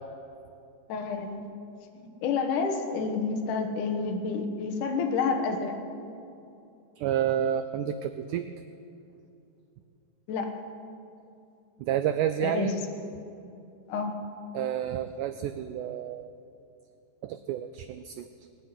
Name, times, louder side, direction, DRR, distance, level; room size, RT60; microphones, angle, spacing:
voice 1, 0.9-1.4 2.0-5.8 10.3-10.6 12.4-12.8 13.9-14.2, left 5 dB, 65° left, 4 dB, 2.6 m, -29 dB
voice 2, 7.0-8.5 11.8-12.7 14.5-16.3 17.2-18.3, right 10 dB, 90° right, 10 dB, 1.8 m, -29 dB
19.5 x 7.6 x 9.7 m, 2.7 s
omnidirectional pair, 4.2 m